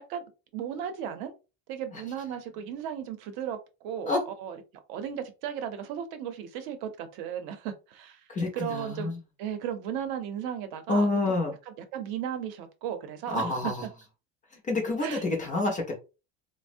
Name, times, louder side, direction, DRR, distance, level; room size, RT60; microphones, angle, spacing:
voice 1, 0.5-1.3 1.7-4.6 4.9-8.3 8.5-9.1 9.4-11.4 11.7-13.6 15.0-15.2, right 9 dB, 65° right, 0.7 m, -35 dB
voice 2, 8.3-9.2 10.9-11.5 13.3-13.7 14.7-16.0, left 2 dB, 20° left, 0.4 m, -28 dB
3.4 x 2.0 x 2.5 m
cardioid pair, 175°, 40 cm